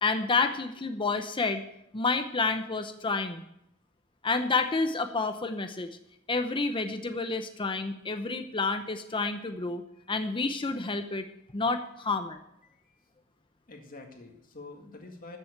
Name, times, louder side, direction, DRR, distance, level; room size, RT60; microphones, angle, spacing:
voice 1, 0.0-1.6 1.9-3.4 4.2-6.0 6.3-9.8 10.1-11.2 11.5-12.4, left 3 dB, 25° left, 7 dB, 0.8 m, -29 dB
voice 2, 12.6-13.0 13.7-15.4, left 3 dB, 45° left, 2 dB, 2.0 m, -47 dB
13.0 x 7.6 x 8.8 m, 0.80 s
head